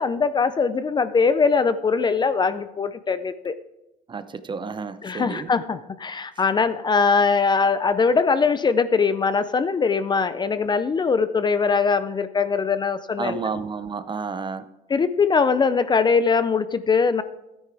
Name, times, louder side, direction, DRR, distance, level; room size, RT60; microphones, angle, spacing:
voice 1, 0.0-3.5 5.0-13.4 14.9-17.2, left 5 dB, 25° left, 13 dB, 0.4 m, -21 dB
voice 2, 4.1-5.5 13.2-14.7, right 5 dB, 30° right, 12 dB, 0.6 m, -31 dB
13.0 x 9.6 x 3.4 m, 0.95 s
cardioid pair, 110°, 17 cm